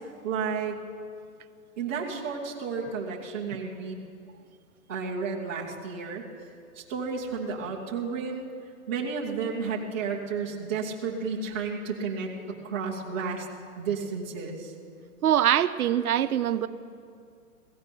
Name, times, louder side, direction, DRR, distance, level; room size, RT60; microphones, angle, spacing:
voice 1, 0.2-0.8 1.8-4.0 4.9-6.2 6.7-8.5 8.9-13.5 13.8-14.7, right 5 dB, 10° right, -5 dB, 0.5 m, -32 dB
voice 2, 15.2-16.7, right 11 dB, 85° right, 13 dB, 0.7 m, -23 dB
16.5 x 13.5 x 5.3 m, 2.3 s
hypercardioid pair, 165°, 43 cm